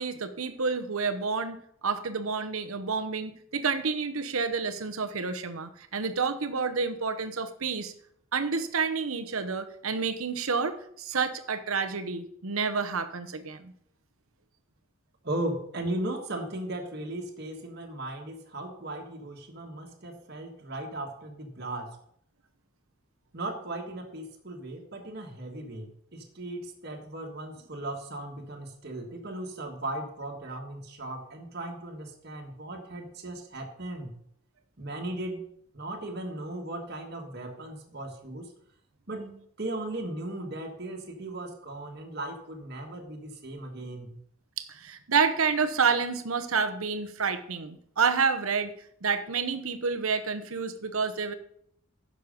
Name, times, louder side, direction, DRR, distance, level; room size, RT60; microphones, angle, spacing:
voice 1, 0.0-7.9 8.3-13.7 44.6-48.7 49.0-51.3, right 5 dB, 80° right, 9 dB, 0.9 m, -29 dB
voice 2, 15.2-21.9 23.3-34.1 34.8-35.5 35.7-38.5 39.1-44.2, right 1 dB, 50° right, 1 dB, 1.7 m, -37 dB
10.5 x 6.5 x 5.2 m, 0.67 s
head